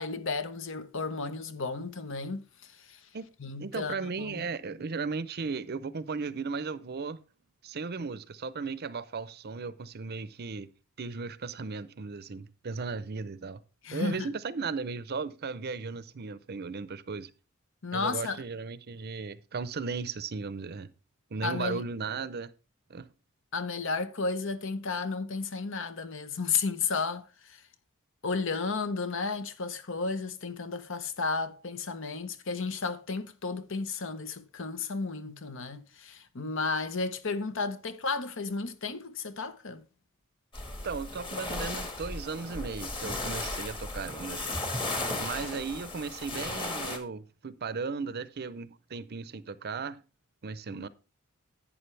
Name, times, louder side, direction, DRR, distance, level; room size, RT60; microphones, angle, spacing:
voice 1, 0.0-3.0 3.4-4.4 13.8-14.3 17.8-18.4 21.4-21.8 23.5-27.6 28.2-39.8, left 4 dB, 65° left, 0.9 m, -33 dB
voice 2, 3.6-7.2 7.6-10.7 11.0-13.6 13.9-17.3 17.9-20.9 21.3-22.5 22.9-23.1 40.8-44.6 45.2-50.0 50.4-50.9, right 4 dB, 50° right, 0.6 m, -36 dB
sound 1, 40.5-47.0, left 2 dB, 25° left, 1.6 m, -35 dB
11.0 x 8.6 x 3.3 m
head